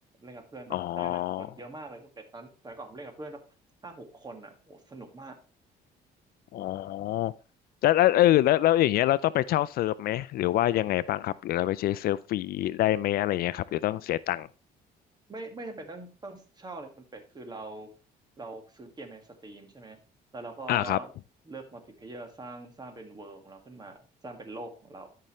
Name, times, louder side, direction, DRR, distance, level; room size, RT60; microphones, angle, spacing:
voice 1, 0.2-3.4 3.8-5.3 15.3-17.9 18.4-20.0 20.3-21.1 21.5-24.0 24.2-25.1, right 2 dB, 25° right, 1.9 m, -43 dB
voice 2, 0.7-1.5 6.5-7.3 7.8-14.5 20.7-21.0, left 14 dB, 65° left, 0.4 m, -25 dB
13.0 x 5.6 x 3.2 m
cardioid pair, 110°, 17 cm